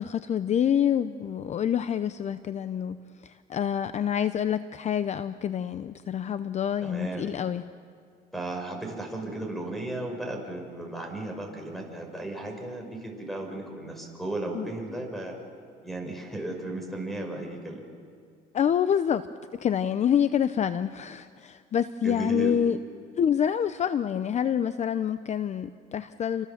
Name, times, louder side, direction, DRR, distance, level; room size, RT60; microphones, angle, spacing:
voice 1, 0.0-7.6 14.5-14.7 18.5-19.3 19.6-22.8 23.2-26.5, left 9 dB, 40° left, 13 dB, 0.7 m, -27 dB
voice 2, 6.8-7.3 8.3-15.4 15.8-17.8 22.0-22.6, right 2 dB, ahead, 3 dB, 6.3 m, -35 dB
30.0 x 25.5 x 7.4 m, 2.2 s
cardioid pair, 110°, 17 cm